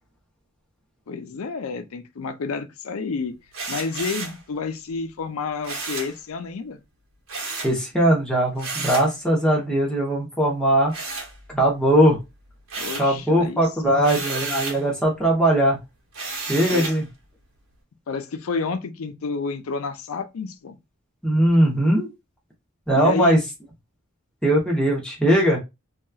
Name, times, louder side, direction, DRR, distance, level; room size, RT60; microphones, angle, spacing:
voice 1, 1.1-3.4 3.7-6.8 12.8-14.2 16.7-16.9 18.1-20.8 22.9-23.4, left 4 dB, 85° left, 0.5 m, -30 dB
sound 1, 3.5-4.4 5.6-6.2 7.3-7.8 8.6-9.1 10.9-11.8 12.2-13.2 14.0-14.8 16.1-17.0, right 3 dB, 80° right, 1.0 m, -32 dB
voice 2, 7.6-10.9 11.5-12.2 13.0-15.8 16.5-17.0 21.2-22.1 22.9-23.4 24.4-25.6, right 1 dB, 5° left, 0.8 m, -20 dB
2.8 x 2.3 x 2.2 m
head